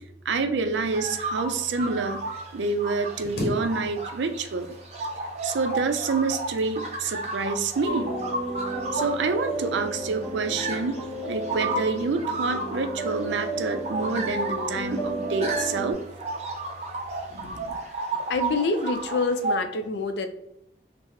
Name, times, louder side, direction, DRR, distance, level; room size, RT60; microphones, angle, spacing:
voice 1, 0.3-2.2 2.5-4.7 5.4-8.2 8.9-11.0 11.3-16.0 17.3-17.8, right 4 dB, 90° right, 8 dB, 0.4 m, -27 dB
sound 1, 0.8-19.6, right 2 dB, 35° right, 0.5 m, -33 dB
sound 2, 3.2-4.3 4.6-5.3 6.2-7.0 7.6-8.0 8.4-8.7, equal, 60° left, 0.8 m, -35 dB
sound 3, 7.9-15.9, right 1 dB, 15° left, 0.8 m, -33 dB
voice 2, 18.3-20.3, left 3 dB, 75° left, 7 dB, 0.4 m, -26 dB
5.6 x 2.0 x 3.0 m, 0.78 s
head